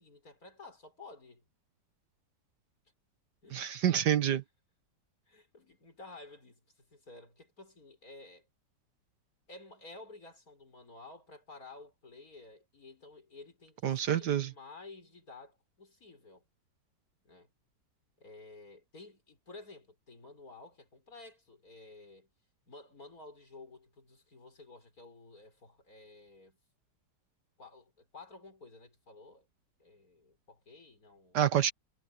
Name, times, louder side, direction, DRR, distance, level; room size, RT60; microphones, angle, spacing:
voice 1, 0.0-1.4 3.4-3.7 5.3-8.5 9.5-16.4 17.2-17.5 18.2-22.3 22.7-26.6 27.6-29.5 29.8-31.4, left 3 dB, 50° left, 6.2 m, -53 dB
voice 2, 3.5-4.4 13.8-14.5 31.3-31.7, right 10 dB, 70° right, 1.6 m, -27 dB
omnidirectional pair, 2.0 m